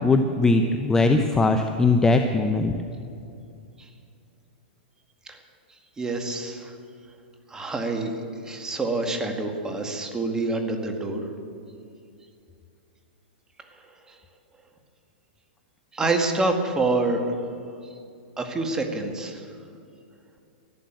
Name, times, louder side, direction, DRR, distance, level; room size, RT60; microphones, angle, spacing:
voice 1, 0.0-2.7, left 3 dB, 10° left, 6 dB, 0.7 m, -20 dB
voice 2, 6.0-6.8 7.5-8.1 8.4-11.2 14.1-14.2 15.9-17.2 18.4-19.5, right 2 dB, 10° right, 4 dB, 1.8 m, -27 dB
13.0 x 12.0 x 9.1 m, 2.5 s
hypercardioid pair, 135°, 6 cm